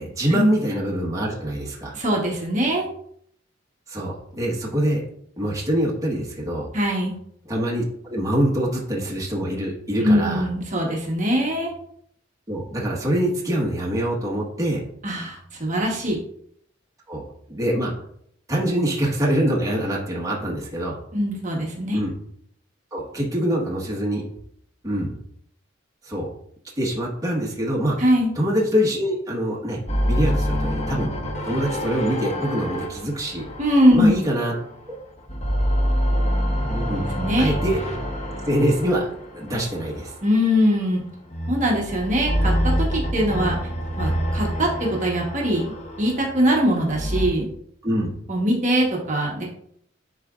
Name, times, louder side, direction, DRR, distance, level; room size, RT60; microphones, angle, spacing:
voice 1, 0.0-1.9 3.9-5.0 5.4-6.7 7.4-10.5 12.5-14.8 17.1-17.9 18.5-21.0 21.9-22.1 22.9-24.2 24.8-25.1 26.0-26.3 26.8-27.9 28.4-29.8 30.0-31.1 31.4-33.5 33.9-34.5 34.9-35.0 36.7-37.0 37.4-37.8 38.5-39.1 39.3-40.1 47.8-48.1, equal, 20° right, -3 dB, 1.2 m, -24 dB
voice 2, 1.9-2.9 6.7-7.1 10.0-11.7 15.0-16.2 21.1-22.0 28.0-28.3 33.6-34.1 37.2-37.5 40.2-41.0 41.5-43.6 44.0-47.5 48.3-49.5, equal, 40° right, -2 dB, 1.1 m, -22 dB
sound 1, 29.9-34.8 35.2-40.5 41.3-47.3, equal, 35° left, 0.9 m, -26 dB
10.5 x 3.9 x 2.4 m, 0.68 s
head